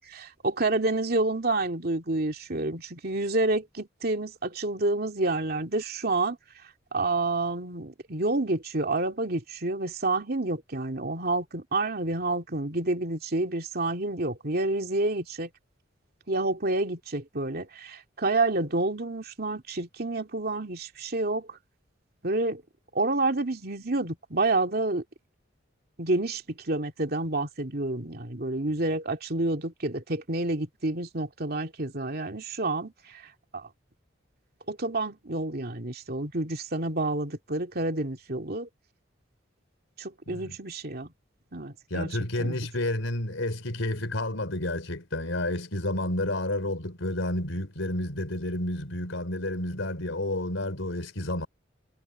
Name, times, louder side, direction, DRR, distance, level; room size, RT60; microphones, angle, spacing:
voice 1, 0.0-6.4 6.9-15.5 16.3-21.6 22.2-22.6 22.9-25.0 26.0-33.2 33.5-33.7 34.7-38.7 40.0-41.1 41.5-42.1 42.4-42.6, right 2 dB, 50° right, 2.6 m, -29 dB
voice 2, 40.3-40.6 41.9-51.5, left 1 dB, 80° left, 3.7 m, -30 dB
head